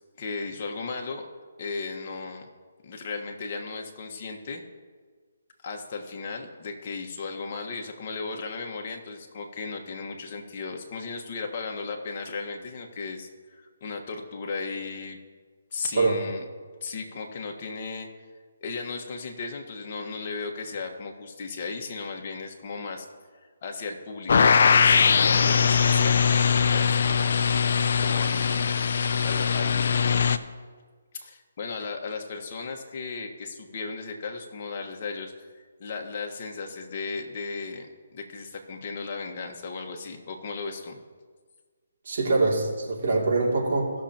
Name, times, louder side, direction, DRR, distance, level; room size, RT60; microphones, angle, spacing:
voice 1, 0.2-1.3 1.6-2.5 2.8-4.6 5.6-15.2 15.7-16.4 16.8-18.1 18.6-23.1 23.6-24.9 25.2-27.6 28.0-28.7 29.2-30.4 31.1-41.0, left 4 dB, 40° left, 2 dB, 1.4 m, -36 dB
sound 1, 24.3-30.4, left 6 dB, 60° left, 0.5 m, -21 dB
voice 2, 42.1-43.9, right 3 dB, 55° right, -3 dB, 2.6 m, -24 dB
17.5 x 6.6 x 2.9 m, 1.5 s
hypercardioid pair, 155°, 0 cm